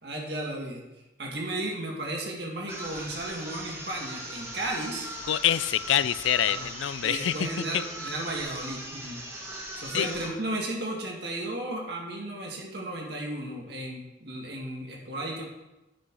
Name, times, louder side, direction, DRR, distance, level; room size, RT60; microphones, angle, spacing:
voice 1, 0.0-0.8 1.2-5.1 6.4-6.7 7.0-9.2 9.8-15.4, right 1 dB, 55° right, -1 dB, 2.1 m, -34 dB
sound 1, 2.7-10.4, right 1 dB, 15° right, 1.5 m, -39 dB
voice 2, 5.3-7.5 7.7-7.8 9.9-10.1, left 11 dB, 75° left, 17 dB, 0.3 m, -26 dB
9.8 x 6.2 x 4.8 m, 1.0 s
head